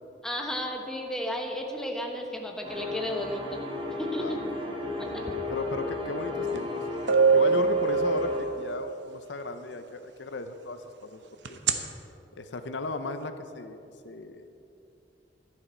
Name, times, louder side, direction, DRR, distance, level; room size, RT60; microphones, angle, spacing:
voice 1, 0.2-3.6 4.0-4.4 5.0-5.4, equal, 5° left, 1 dB, 1.1 m, -33 dB
sound 1, 2.6-8.4, left 3 dB, 30° right, 1.7 m, -34 dB
voice 2, 5.1-6.8 7.3-11.2 11.5-11.6 12.4-14.5, left 3 dB, 85° left, 9 dB, 0.7 m, -36 dB
sound 2, 6.6-6.7 7.1-8.8 11.5-11.7, right 5 dB, 80° right, 0.8 m, -22 dB
12.0 x 11.0 x 4.5 m, 2.7 s
head